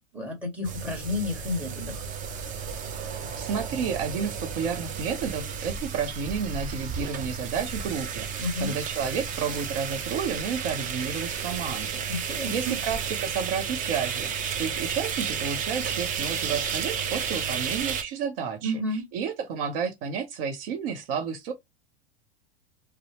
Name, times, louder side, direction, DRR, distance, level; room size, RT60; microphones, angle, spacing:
voice 1, 0.1-2.0 8.4-8.7 12.1-12.7 18.6-19.0, left 1 dB, 5° right, 1.4 m, -31 dB
sound 1, 0.6-18.0, right 7 dB, 25° right, 0.5 m, -32 dB
voice 2, 3.4-21.5, right 6 dB, 60° right, 0.7 m, -31 dB
2.7 x 2.0 x 3.0 m
hypercardioid pair, 110°, 33 cm